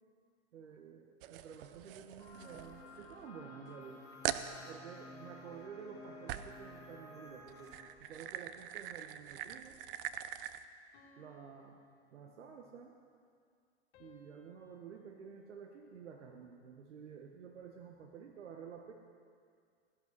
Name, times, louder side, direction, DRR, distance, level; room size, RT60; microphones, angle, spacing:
voice 1, 0.5-7.7 8.0-9.8 11.2-11.8 12.1-13.0 14.0-18.9, right 6 dB, 85° right, 3 dB, 1.3 m, -51 dB
sound 1, 1.2-3.3 3.7-3.8 4.2-4.5 6.3-6.6 7.4-10.7, right 12 dB, 50° right, 0.8 m, -42 dB
sound 2, 2.2-7.7, left 1 dB, 10° left, 3.2 m, -53 dB
sound 3, 10.9-12.9 13.9-16.3, left 4 dB, 50° left, 3.0 m, -66 dB
17.0 x 11.0 x 6.2 m, 2.2 s
hypercardioid pair, 120°, 35 cm